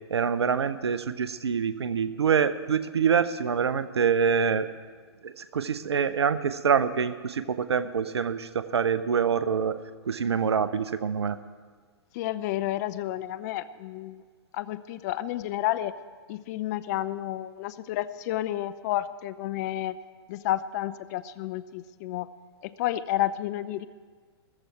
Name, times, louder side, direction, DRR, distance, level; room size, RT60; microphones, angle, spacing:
voice 1, 0.1-4.7 5.2-9.8 10.1-11.4, right 6 dB, 80° right, 14 dB, 0.7 m, -25 dB
voice 2, 12.1-14.2 14.5-15.9 16.3-20.0 20.3-22.3 22.6-23.9, left 14 dB, 40° left, 15 dB, 0.5 m, -31 dB
14.5 x 14.5 x 4.6 m, 1.6 s
hypercardioid pair, 120°, 14 cm